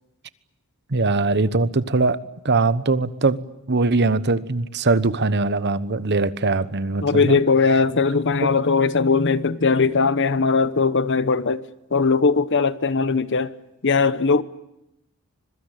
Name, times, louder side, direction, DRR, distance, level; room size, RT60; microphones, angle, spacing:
voice 1, 0.9-2.2 2.4-3.4 3.7-7.4, right 3 dB, 50° right, 1.1 m, -21 dB
voice 2, 7.0-11.6 11.9-13.5 13.8-14.4, left 4 dB, 55° left, 1.0 m, -19 dB
25.0 x 23.0 x 9.2 m
head